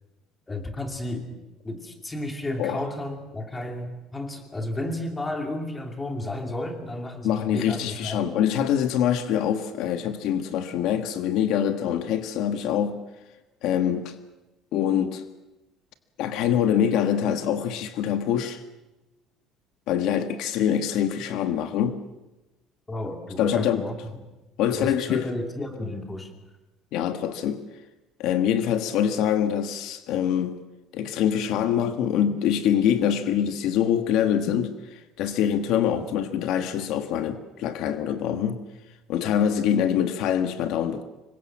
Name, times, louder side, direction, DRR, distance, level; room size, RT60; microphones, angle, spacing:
voice 1, 0.5-1.4 1.6-8.3 22.9-24.0 24.7-26.3, left 1 dB, 10° left, 2.7 m, -32 dB
voice 2, 7.2-13.0 13.6-14.2 14.7-15.2 16.2-18.6 19.9-22.0 23.4-23.9 24.6-25.3 26.9-27.6 28.2-30.6 30.9-38.6 39.1-41.0, left 9 dB, 60° left, 1.5 m, -24 dB
26.0 x 23.0 x 7.5 m
cardioid pair, 170°, 0 cm